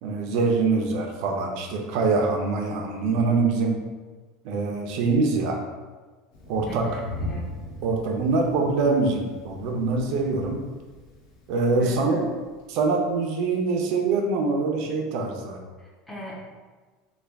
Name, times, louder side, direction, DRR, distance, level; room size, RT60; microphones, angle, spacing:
voice 1, 0.0-3.8 4.4-5.6 6.5-7.0 7.8-10.6 11.5-12.3 12.7-15.6, right 3 dB, 55° right, 2 dB, 0.5 m, -24 dB
Thunder, 6.3-13.1, left 1 dB, 55° left, 0.8 m, -40 dB
voice 2, 6.8-7.5 11.8-12.3 15.8-16.3, equal, 5° left, -5 dB, 0.7 m, -40 dB
3.3 x 2.3 x 3.4 m, 1.3 s
cardioid pair, 165°, 0 cm